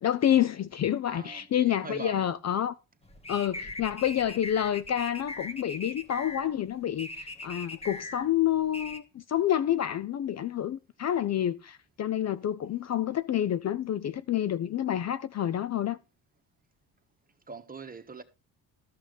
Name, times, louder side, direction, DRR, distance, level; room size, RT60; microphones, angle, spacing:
voice 1, 0.0-2.7 3.3-16.0, left 10 dB, 40° left, 0.5 m, -28 dB
voice 2, 1.1-2.3 17.5-18.2, right 4 dB, 20° right, 1.4 m, -42 dB
sound 1, 3.0-9.0, left 2 dB, 15° left, 1.3 m, -41 dB
13.0 x 6.2 x 5.1 m
cardioid pair, 95°, 39 cm